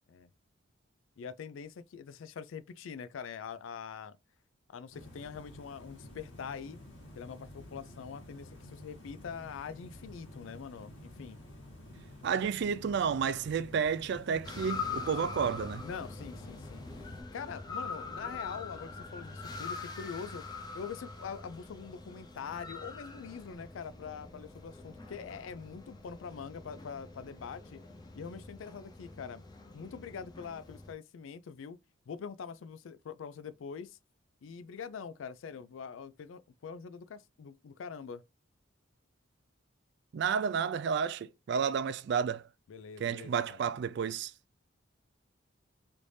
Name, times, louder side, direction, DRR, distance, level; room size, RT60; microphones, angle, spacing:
voice 1, 1.2-4.2 4.7-6.8 7.2-11.4 15.8-16.8 17.3-20.4 20.7-27.8 28.1-29.4 29.7-31.8 32.1-34.0 34.4-38.2 42.7-43.6, left 6 dB, 80° left, 0.4 m, -44 dB
sound 1, 4.9-17.2, left 1 dB, 65° left, 1.4 m, -50 dB
voice 2, 12.2-15.9 40.1-42.5 43.0-44.3, right 6 dB, 60° right, 0.3 m, -31 dB
sound 2, 14.4-30.9, left 4 dB, 20° left, 0.5 m, -44 dB
3.3 x 2.6 x 3.2 m
head